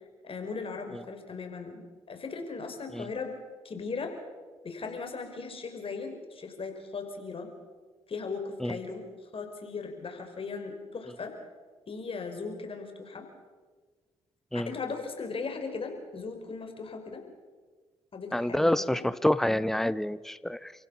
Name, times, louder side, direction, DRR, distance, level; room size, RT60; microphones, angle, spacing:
voice 1, 0.2-3.4 3.6-4.1 4.6-7.5 8.1-11.3 11.9-13.3 14.5-17.2 18.1-19.1, left 4 dB, 50° left, 4 dB, 5.6 m, -38 dB
voice 2, 18.3-20.7, left 1 dB, 5° left, 16 dB, 1.0 m, -27 dB
29.5 x 16.0 x 7.4 m, 1.4 s
supercardioid pair, 55°, 12 cm